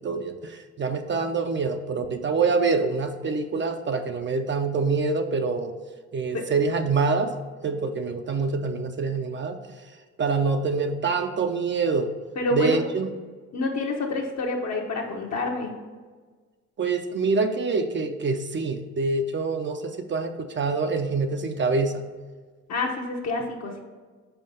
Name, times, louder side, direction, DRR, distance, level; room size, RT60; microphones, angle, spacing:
voice 1, 0.0-5.7 6.1-7.3 7.6-9.6 10.2-12.1 12.5-13.1 16.8-22.0, right 4 dB, 40° right, 6 dB, 0.5 m, -25 dB
voice 2, 12.4-12.8 13.5-15.7 22.7-23.8, left 2 dB, 60° left, -1 dB, 1.0 m, -27 dB
5.6 x 4.4 x 5.5 m, 1.4 s
cardioid pair, 90°, 30 cm